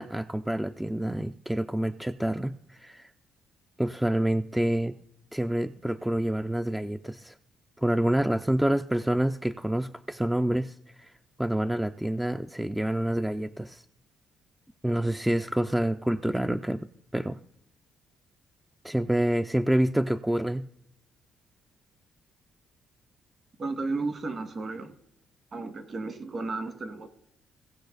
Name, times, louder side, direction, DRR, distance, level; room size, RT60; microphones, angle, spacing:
voice 1, 0.0-3.1 3.8-5.0 5.3-7.4 7.8-13.8 14.8-16.9 17.1-17.4 18.8-20.7, right 1 dB, 5° right, 9 dB, 0.4 m, -27 dB
voice 2, 23.6-24.9 25.5-27.1, right 3 dB, 45° right, 9 dB, 1.7 m, -33 dB
17.5 x 6.3 x 3.9 m, 0.78 s
cardioid pair, 90°, 0 cm